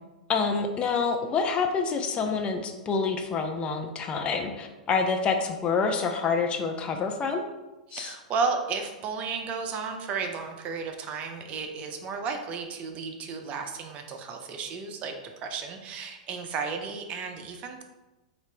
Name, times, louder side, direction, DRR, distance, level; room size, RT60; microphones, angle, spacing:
voice 1, 0.3-7.4 7.9-8.1, left 5 dB, 25° left, 5 dB, 0.4 m, -27 dB
voice 2, 7.9-17.8, right 5 dB, 35° right, 5 dB, 0.5 m, -33 dB
4.1 x 2.5 x 3.3 m, 1.1 s
figure-of-eight pair, 95°, 4 cm